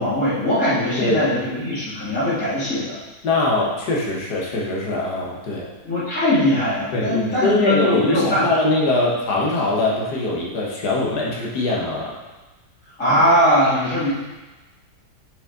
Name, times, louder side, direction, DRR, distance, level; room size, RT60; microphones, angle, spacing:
voice 1, 0.0-3.0 5.8-8.5 13.0-14.1, left 1 dB, 50° left, -12 dB, 2.8 m, -20 dB
voice 2, 0.9-1.3 3.2-5.7 6.9-12.1, left 2 dB, 70° left, -3 dB, 1.8 m, -22 dB
7.1 x 5.1 x 3.9 m, 1.2 s
omnidirectional pair, 1.8 m